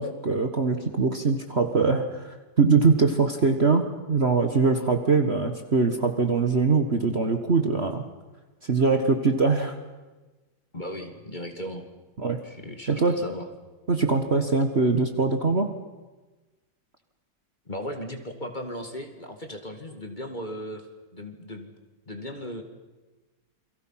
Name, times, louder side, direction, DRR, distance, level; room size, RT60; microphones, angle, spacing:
voice 1, 0.0-2.3 2.6-8.0 8.6-9.8 12.2-12.4 12.9-13.2 13.9-15.7, right 4 dB, 40° right, 6 dB, 1.6 m, -22 dB
voice 2, 10.7-11.9 12.4-13.5 17.7-20.9 21.1-21.7 22.1-22.6, equal, 25° left, 5 dB, 2.3 m, -36 dB
29.0 x 23.0 x 5.8 m, 1.2 s
omnidirectional pair, 2.0 m